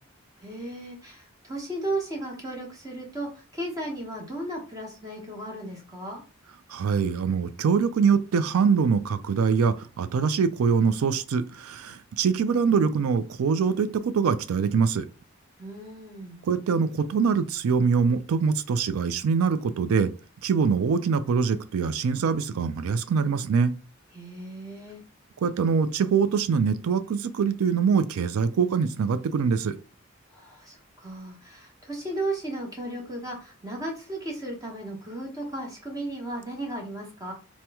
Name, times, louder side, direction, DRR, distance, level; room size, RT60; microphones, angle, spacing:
voice 1, 0.4-6.2 15.6-16.4 24.1-25.0 30.3-37.3, right 1 dB, 15° right, 0.9 m, -35 dB
voice 2, 6.7-15.1 16.4-20.1 20.4-23.7 25.4-29.7, right 6 dB, 90° right, 0.4 m, -24 dB
2.9 x 2.1 x 3.4 m
head